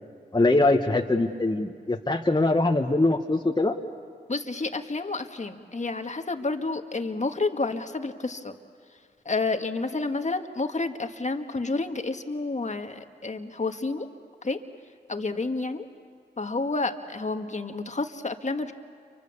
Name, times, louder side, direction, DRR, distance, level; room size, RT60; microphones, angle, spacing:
voice 1, 0.3-3.7, left 2 dB, 25° left, 2 dB, 1.6 m, -22 dB
voice 2, 4.3-8.5 9.2-14.1 14.4-14.6 15.1-15.9 16.4-18.7, left 3 dB, 40° left, 6 dB, 1.8 m, -30 dB
30.0 x 25.0 x 7.1 m, 2.2 s
cardioid pair, 40°, 18 cm